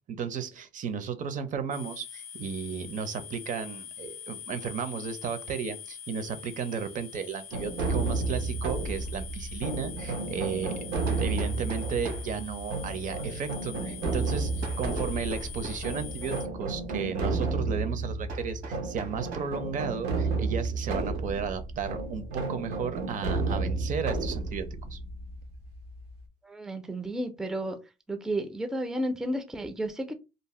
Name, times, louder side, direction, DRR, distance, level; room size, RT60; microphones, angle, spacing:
voice 1, 0.1-10.8 11.1-25.0, right 6 dB, 50° right, 0.6 m, -34 dB
sound 1, 1.7-16.5, left 8 dB, 60° left, 0.5 m, -44 dB
sound 2, 7.5-26.2, right 3 dB, 90° right, 0.8 m, -32 dB
Hammer, 9.5-9.6 11.1-12.3 14.6-15.9 18.3-19.6, right 3 dB, 75° right, 1.2 m, -42 dB
voice 2, 26.4-27.8 28.1-30.1, right 1 dB, 5° right, 0.4 m, -32 dB
2.6 x 2.0 x 3.0 m
cardioid pair, 110°, 17 cm